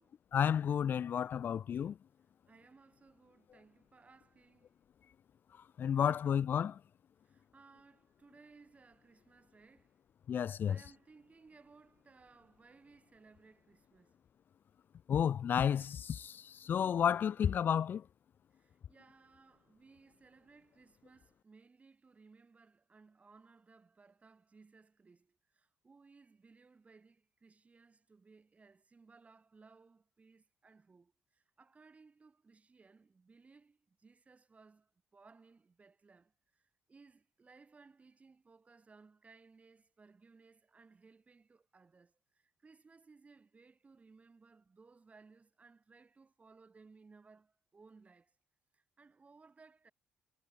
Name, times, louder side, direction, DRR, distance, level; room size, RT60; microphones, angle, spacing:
voice 1, 0.3-1.9 5.8-6.8 10.3-10.8 15.1-18.0, left 8 dB, 55° left, 0.4 m, -31 dB
voice 2, 2.5-4.7 7.2-10.0 10.7-14.2 18.5-48.3 48.7-49.9, right 4 dB, 35° right, 4.7 m, -62 dB
hypercardioid pair, 55°, 4 cm